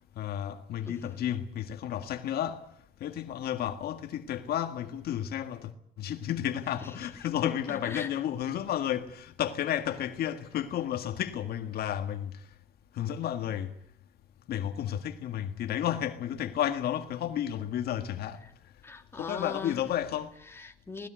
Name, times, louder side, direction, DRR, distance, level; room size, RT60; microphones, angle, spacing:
voice 1, 0.2-2.6 3.0-5.7 6.0-12.5 12.9-13.7 14.5-18.4 19.1-20.4, left 10 dB, 65° left, 1.8 m, -32 dB
voice 2, 0.9-1.2 6.8-7.1 7.7-8.1 18.8-19.8 20.5-21.1, left 3 dB, 15° left, 2.6 m, -41 dB
19.5 x 19.5 x 9.3 m
cardioid pair, 110°, 17 cm